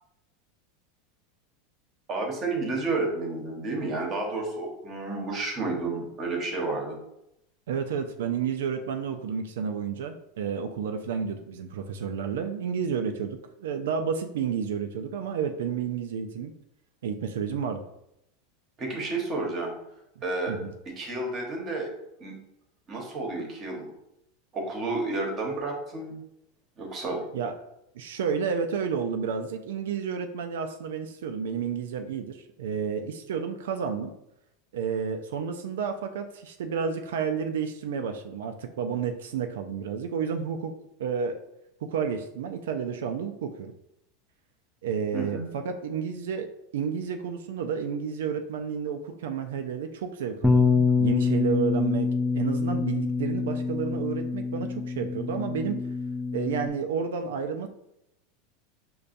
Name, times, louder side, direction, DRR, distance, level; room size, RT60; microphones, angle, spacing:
voice 1, 2.1-7.0 18.8-19.7 20.2-20.6 21.0-21.9 22.2-22.3 22.9-23.9 24.5-26.2 26.8-27.2 45.1-45.5, right 2 dB, 30° right, 1 dB, 0.9 m, -31 dB
voice 2, 7.7-16.5 17.0-17.8 20.5-20.7 27.3-27.5 27.9-34.1 34.7-40.7 41.0-41.4 41.9-43.7 44.8-52.1 52.3-55.8 56.3-57.7, right 6 dB, 90° right, 6 dB, 0.3 m, -31 dB
Bass guitar, 50.4-56.7, left 4 dB, 5° left, 0.3 m, -26 dB
5.2 x 2.2 x 2.5 m, 0.82 s
supercardioid pair, 145°, 0 cm